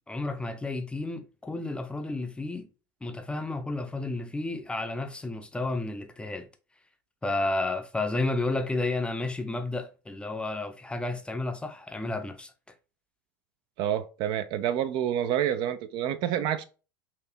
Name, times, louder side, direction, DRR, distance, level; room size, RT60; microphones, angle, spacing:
voice 1, 0.1-2.7 3.0-6.5 7.2-12.5, left 2 dB, 10° left, 0.6 m, -31 dB
voice 2, 13.8-16.6, right 10 dB, 45° right, 0.4 m, -28 dB
4.1 x 2.7 x 2.8 m
figure-of-eight pair, 80°, 11 cm